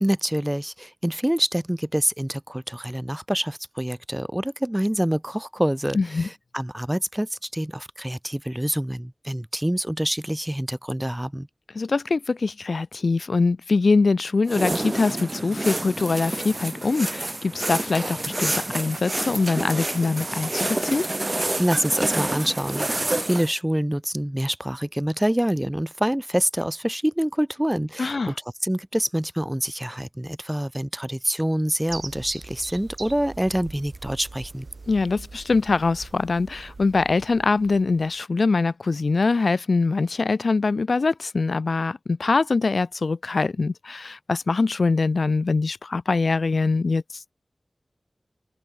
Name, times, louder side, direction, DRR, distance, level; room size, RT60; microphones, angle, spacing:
voice 1, 0.0-11.5 21.6-28.3 28.6-34.7, equal, 10° right, 1.1 m, -26 dB
voice 2, 5.9-6.3 11.7-21.0 28.0-28.3 34.9-47.0, left 3 dB, 75° left, 0.5 m, -23 dB
sound 1, 14.5-23.5, right 2 dB, 30° right, 1.2 m, -28 dB
sound 2, 31.9-38.2, right 3 dB, 60° right, 5.9 m, -41 dB
open air
wide cardioid pair, 85°, 0 cm